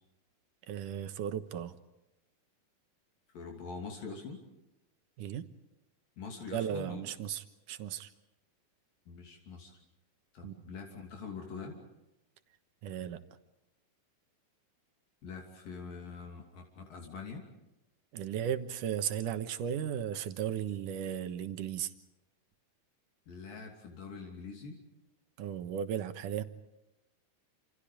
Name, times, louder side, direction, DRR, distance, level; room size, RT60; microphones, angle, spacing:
voice 1, 0.7-1.7 5.2-5.5 6.5-8.1 10.4-10.6 12.8-13.2 18.1-21.9 25.4-26.4, right 9 dB, 70° right, 9 dB, 2.7 m, -35 dB
voice 2, 3.3-4.4 6.2-7.0 9.1-9.7 10.3-11.8 15.2-17.4 23.3-24.8, left 4 dB, 75° left, 1 dB, 4.6 m, -44 dB
28.0 x 28.0 x 5.1 m, 0.94 s
omnidirectional pair, 4.0 m